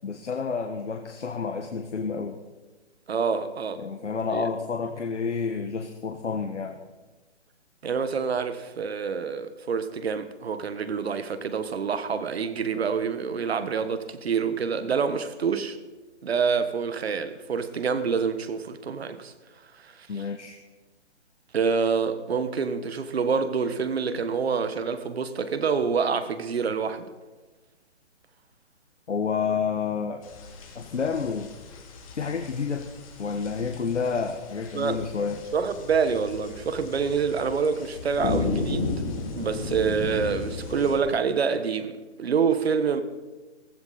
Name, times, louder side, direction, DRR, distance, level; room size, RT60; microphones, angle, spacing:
voice 1, 0.0-2.4 3.8-6.8 20.1-20.6 29.1-30.3 30.7-31.5 32.1-32.9 33.2-35.4, left 5 dB, 85° left, 1.4 m, -29 dB
voice 2, 3.1-3.8 4.3-4.5 7.8-15.8 16.2-19.3 19.8-20.1 21.5-27.1 34.7-35.1 35.5-39.0 39.4-43.0, right 6 dB, 60° right, 1.6 m, -27 dB
sound 1, 30.2-41.0, left 3 dB, 30° left, 2.2 m, -34 dB
15.5 x 15.5 x 4.2 m
hypercardioid pair, 155°, 35 cm